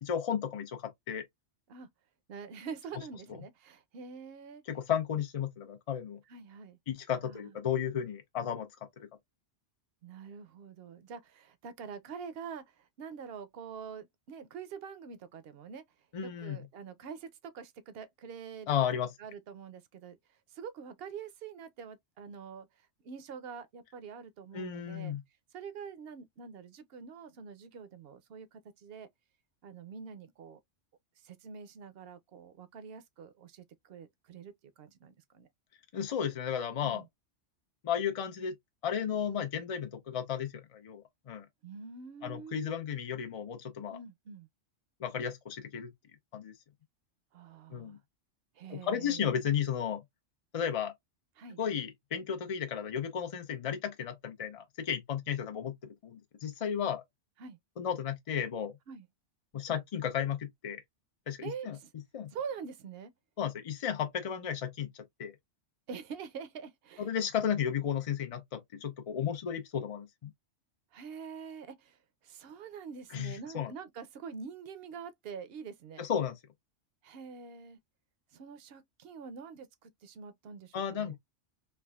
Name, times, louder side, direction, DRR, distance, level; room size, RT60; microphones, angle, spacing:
voice 1, 0.0-1.2 4.7-6.2 6.9-8.7 16.1-16.6 18.7-19.1 24.5-25.2 35.9-37.0 37.8-38.6 38.8-41.5 42.2-44.0 45.0-45.9 46.3-46.5 47.7-48.0 48.7-50.0 50.5-50.9 51.6-57.0 57.8-58.8 59.5-60.8 61.3-61.8 62.1-62.3 63.4-65.3 67.0-70.3 73.1-73.7 76.0-76.4 80.7-81.2, left 8 dB, 60° left, 0.3 m, -34 dB
voice 2, 2.3-4.6 6.3-6.8 7.2-7.5 10.0-15.8 16.2-18.9 19.2-20.2 20.5-22.7 23.0-25.1 25.5-29.1 29.6-30.6 31.2-35.5 36.8-37.0 41.6-42.8 43.9-44.5 47.3-48.0 48.6-49.3 51.4-51.6 57.4-57.6 58.9-59.1 61.4-61.9 62.3-63.1 65.9-67.1 70.9-76.0 77.0-77.8 78.3-81.2, right 6 dB, 65° right, 0.7 m, -45 dB
3.3 x 2.4 x 2.2 m
omnidirectional pair, 1.2 m